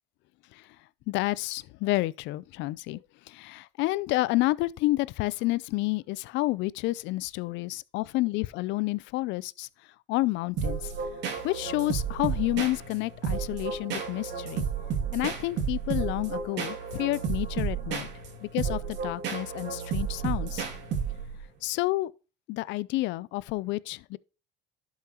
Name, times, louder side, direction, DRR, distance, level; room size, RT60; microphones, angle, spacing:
voice 1, 1.1-9.7 10.1-10.9 11.4-14.7 15.1-18.1 18.4-20.6 21.6-22.1 22.5-24.2, left 19 dB, 65° left, 0.5 m, -30 dB
sound 1, 10.6-21.4, right 6 dB, 60° right, 2.5 m, -32 dB
11.5 x 5.7 x 2.9 m
cardioid pair, 115°, 21 cm